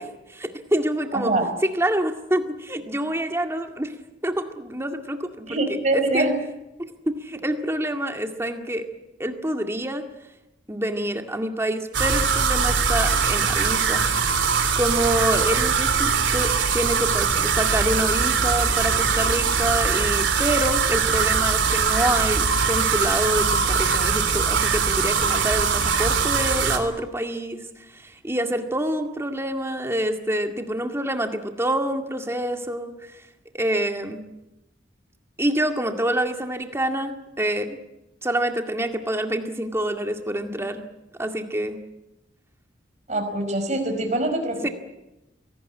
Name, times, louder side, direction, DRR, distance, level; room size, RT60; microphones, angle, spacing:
voice 1, 0.3-1.3 1.7-3.9 4.2-5.6 6.1-6.3 6.8-8.9 9.2-10.0 10.7-14.0 14.8-33.2 33.5-34.2 35.4-37.8 38.2-40.9 41.2-41.8 44.6-44.7, right 1 dB, 15° right, 5 dB, 2.0 m, -27 dB
voice 2, 1.1-1.5 5.5-6.3 43.1-44.7, right 2 dB, 40° right, 5 dB, 5.0 m, -24 dB
sound 1, 11.9-26.8, right 5 dB, 90° right, 3.5 m, -22 dB
25.0 x 18.0 x 9.1 m, 0.97 s
head